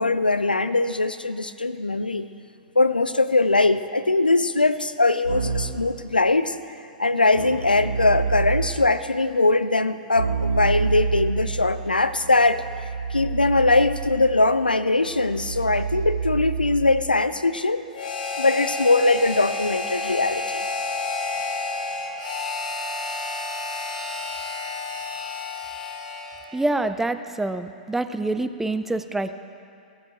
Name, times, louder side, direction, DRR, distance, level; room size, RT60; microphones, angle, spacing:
voice 1, 0.0-2.3 2.8-6.6 7.0-12.8 13.1-17.8 18.4-20.7, left 2 dB, 90° left, 13 dB, 0.5 m, -21 dB
Keyboard (musical), 5.2-5.9 7.3-8.9 10.1-17.2, right 5 dB, 80° right, 1.9 m, -28 dB
Harmonica, 17.9-26.6, left 3 dB, 70° left, 2.5 m, -30 dB
voice 2, 26.5-29.3, right 2 dB, 5° right, 10 dB, 0.5 m, -26 dB
16.0 x 13.0 x 4.5 m, 2.4 s
figure-of-eight pair, 105°, 5 cm